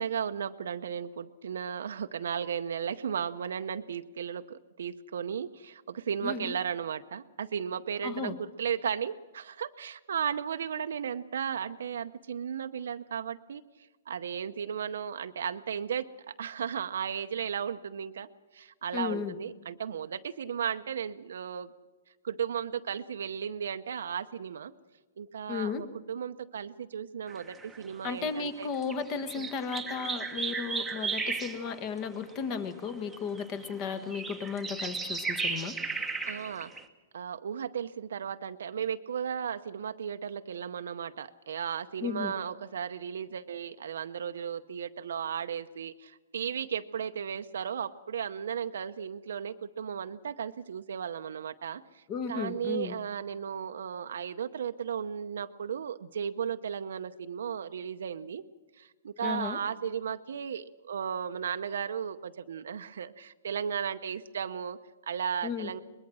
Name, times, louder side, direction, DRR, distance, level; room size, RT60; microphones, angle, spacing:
voice 1, 0.0-13.6 14.1-21.7 22.2-24.7 25.2-28.7 29.4-29.5 36.3-36.7 37.1-58.4 58.8-65.8, right 8 dB, 80° right, 8 dB, 0.8 m, -35 dB
voice 2, 6.2-6.6 8.0-8.4 18.9-19.3 25.5-25.8 28.0-35.7 42.0-42.3 52.1-52.9 59.2-59.6 65.4-65.7, left 6 dB, 25° left, 11 dB, 1.5 m, -34 dB
sound 1, 27.3-27.9 28.3-32.0 32.3-32.4 32.6-36.9, right 4 dB, 5° right, 1.1 m, -35 dB
22.5 x 20.5 x 6.3 m, 1.3 s
hypercardioid pair, 160°, 0 cm